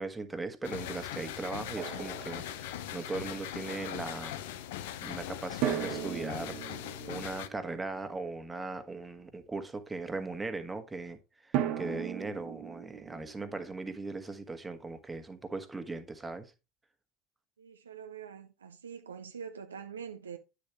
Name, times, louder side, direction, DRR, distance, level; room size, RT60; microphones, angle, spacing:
voice 1, 0.0-4.4 5.0-16.5, right 3 dB, 15° right, 1.5 m, -39 dB
sound 1, 0.6-7.5, left 12 dB, 70° left, 0.7 m, -40 dB
Drum, 1.8-3.1 5.6-8.6 11.5-14.4, right 11 dB, 55° right, 1.2 m, -37 dB
voice 2, 17.6-20.4, right 7 dB, 85° right, 0.7 m, -44 dB
9.6 x 6.7 x 3.0 m
hypercardioid pair, 75°, 0 cm